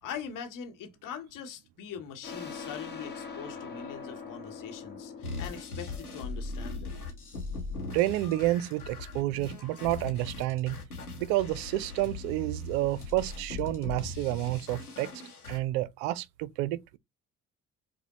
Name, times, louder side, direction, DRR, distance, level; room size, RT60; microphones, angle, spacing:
voice 1, 0.0-7.0, left 7 dB, 45° left, 1.0 m, -42 dB
sound 1, 2.2-7.5, left 5 dB, 25° left, 1.2 m, -43 dB
sound 2, 5.2-15.6, left 3 dB, 90° left, 0.8 m, -40 dB
voice 2, 7.9-10.8 11.2-15.1 15.5-17.0, right 16 dB, 55° right, 0.5 m, -30 dB
4.9 x 2.1 x 2.9 m
figure-of-eight pair, 45°, 44 cm